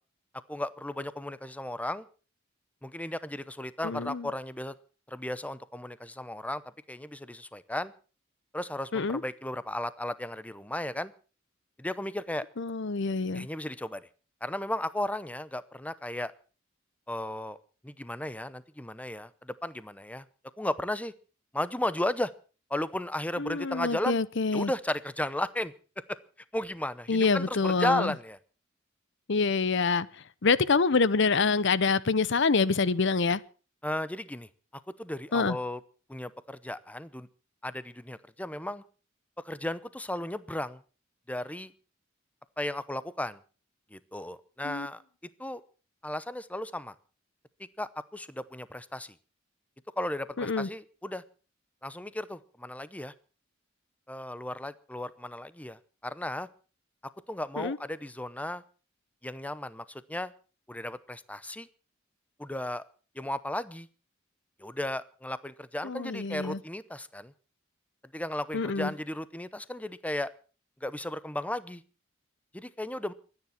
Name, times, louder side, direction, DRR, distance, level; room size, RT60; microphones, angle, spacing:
voice 1, 0.5-2.0 2.8-4.7 5.1-6.6 6.9-7.9 8.5-11.1 11.8-12.4 13.3-14.1 14.4-16.3 17.1-17.6 17.8-20.2 20.6-21.1 21.5-22.3 22.7-24.2 24.5-25.7 26.5-28.4 33.8-34.5 35.0-35.8 36.1-37.3 37.6-38.8 39.4-40.8 41.3-41.7 42.6-43.4 43.9-45.0 45.4-45.6 46.0-46.9 47.8-49.1 50.0-51.2 51.8-53.1 54.1-56.5 57.3-58.6 59.2-60.3 60.7-61.7 62.4-62.8 63.1-63.9 64.6-67.3 68.1-70.3 70.8-71.8 72.5-73.1, left 1 dB, 5° left, 0.8 m, -35 dB
voice 2, 3.8-4.3 8.9-9.2 12.6-13.5 23.4-24.7 27.1-28.1 29.3-30.1 30.4-33.4 35.3-35.6 44.6-44.9 50.4-50.7 57.6-57.8 65.8-66.6 68.5-68.9, left 4 dB, 65° left, 0.8 m, -26 dB
23.5 x 9.9 x 5.9 m
head